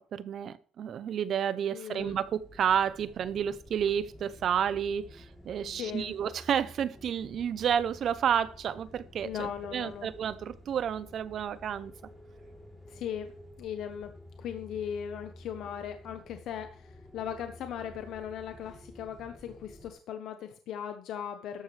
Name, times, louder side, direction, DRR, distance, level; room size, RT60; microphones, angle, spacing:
voice 1, 0.1-11.9, right 8 dB, 45° right, 0.7 m, -31 dB
voice 2, 1.7-2.1 5.7-6.1 9.2-10.1 12.9-13.3 13.6-14.1 14.4-21.6, left 9 dB, 60° left, 1.1 m, -38 dB
sound 1, 2.0-19.9, left 1 dB, 5° left, 3.5 m, -51 dB
13.0 x 11.5 x 3.4 m
cardioid pair, 170°, 0 cm